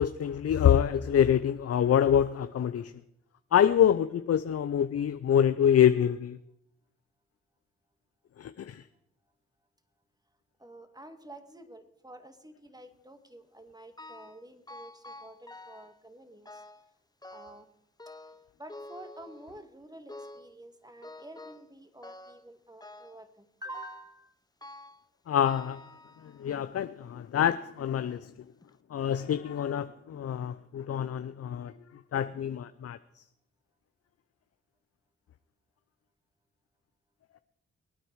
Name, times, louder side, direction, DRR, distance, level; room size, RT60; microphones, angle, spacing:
voice 1, 0.0-2.9 3.5-6.4 8.4-8.8 25.3-25.8 26.2-28.3 28.9-31.7 32.1-33.2, left 9 dB, 55° left, 0.6 m, -26 dB
voice 2, 10.6-16.6 17.3-17.7 18.6-24.3, right 1 dB, 15° right, 2.1 m, -49 dB
sound 1, 14.0-14.4 14.7-16.0 16.4-16.9 17.2-17.7 18.0-19.7 20.1-20.6 21.0-21.7 22.0-22.5 22.8-23.2 23.7-24.1 24.6-25.1 25.4-26.5 27.2-27.3 28.1-28.2 28.6-28.7, left 2 dB, 15° left, 0.9 m, -48 dB
23.0 x 9.2 x 4.7 m
supercardioid pair, 50°, 29 cm